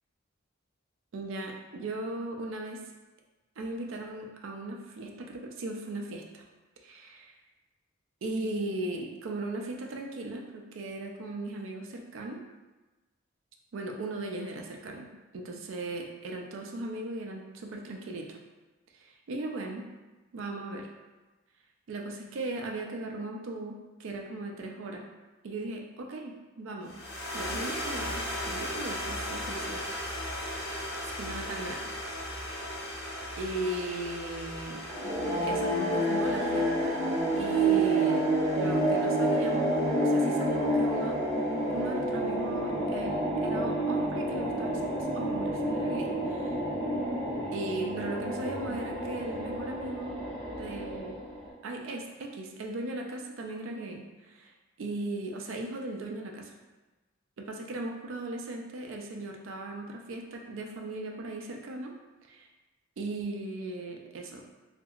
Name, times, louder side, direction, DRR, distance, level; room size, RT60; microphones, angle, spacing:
voice 1, 1.1-2.8 3.6-6.4 6.8-7.1 8.2-12.4 13.7-18.4 18.9-19.9 20.3-20.9 21.9-25.1 25.4-27.0 27.3-29.9 31.2-31.9 33.4-34.8 35.4-37.0 37.4-38.3 38.5-41.3 41.7-46.5 47.5-50.2 50.6-51.2 51.6-54.5 54.8-56.6 57.4-61.9 62.3-62.5 63.0-64.4, right 2 dB, 70° right, 2 dB, 0.4 m, -37 dB
sound 1, 26.8-41.3, left 1 dB, 55° left, 0.8 m, -38 dB
sound 2, 34.9-51.5, right 1 dB, 25° right, 0.6 m, -29 dB
2.8 x 2.5 x 2.4 m, 1.2 s
head